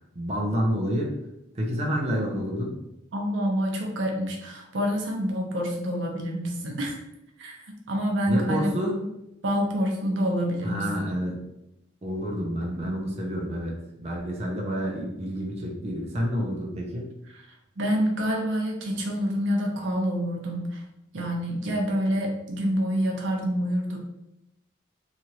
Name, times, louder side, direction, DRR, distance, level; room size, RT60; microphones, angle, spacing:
voice 1, 0.2-1.1 1.6-2.7 8.3-9.0 10.6-11.4 12.0-13.7 14.0-17.1, equal, 35° right, -2 dB, 0.5 m, -28 dB
voice 2, 3.1-7.0 7.4-7.6 7.9-8.9 9.4-10.9 17.3-17.4 17.8-20.8 21.1-24.0, equal, 85° right, 0 dB, 0.6 m, -27 dB
2.9 x 2.4 x 2.8 m, 0.86 s
head